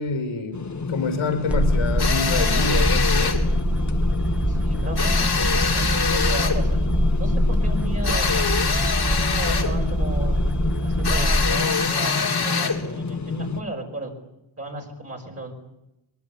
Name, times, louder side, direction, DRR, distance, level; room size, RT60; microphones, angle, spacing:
voice 1, 0.0-3.4, left 3 dB, 80° left, 8 dB, 5.3 m, -27 dB
sound 1, 0.5-13.6, left 4 dB, 35° left, 1.9 m, -29 dB
sound 2, 1.5-11.5, equal, 5° right, 1.7 m, -23 dB
sound 3, 2.0-3.4 5.0-6.6 8.0-9.8 11.0-12.9, left 5 dB, 50° left, 3.7 m, -24 dB
voice 2, 4.5-8.5 9.1-10.5 10.8-14.1 14.6-15.5, right 2 dB, 30° right, 0 dB, 5.5 m, -35 dB
24.0 x 24.0 x 8.7 m, 0.89 s
wide cardioid pair, 165°, 49 cm